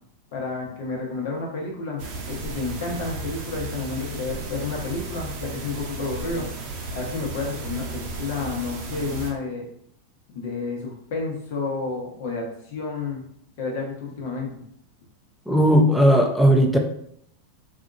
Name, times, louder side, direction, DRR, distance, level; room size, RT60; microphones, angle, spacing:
voice 1, 0.3-6.5 6.9-9.6 10.3-13.2 13.6-14.5, left 4 dB, 65° left, -1 dB, 1.0 m, -30 dB
sound 1, 2.0-9.3, right 3 dB, 55° right, 0.7 m, -34 dB
voice 2, 15.5-16.8, equal, ahead, 2 dB, 0.5 m, -17 dB
2.7 x 2.4 x 2.5 m, 0.68 s
hypercardioid pair, 100°, 0 cm